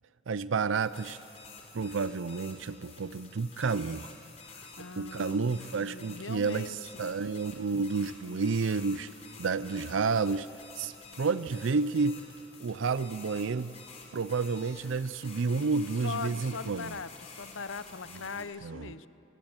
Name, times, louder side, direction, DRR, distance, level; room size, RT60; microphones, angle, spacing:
voice 1, 0.3-1.2 1.7-4.1 4.8-9.1 9.4-10.5 10.7-12.2 12.6-13.7 14.1-16.9 18.6-18.9, right 4 dB, 80° right, 15 dB, 0.5 m, -30 dB
sound 1, 0.8-18.4, left 4 dB, 35° left, 4.3 m, -50 dB
voice 2, 4.8-5.5 5.7-7.0 16.0-19.1, left 5 dB, 80° left, 13 dB, 0.9 m, -40 dB
28.0 x 21.5 x 8.9 m, 3.0 s
head